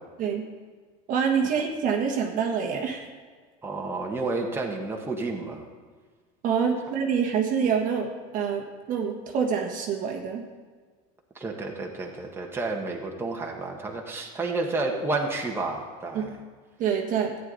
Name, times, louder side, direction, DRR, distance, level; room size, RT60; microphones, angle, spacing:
voice 1, 1.1-3.1 6.4-8.1 8.3-10.4 16.1-16.2 16.8-17.3, right 7 dB, 45° right, 1 dB, 1.4 m, -26 dB
voice 2, 3.6-5.6 11.3-16.4, right 3 dB, 10° right, 0 dB, 1.6 m, -30 dB
13.5 x 9.5 x 4.1 m, 1.5 s
supercardioid pair, 130°, 19 cm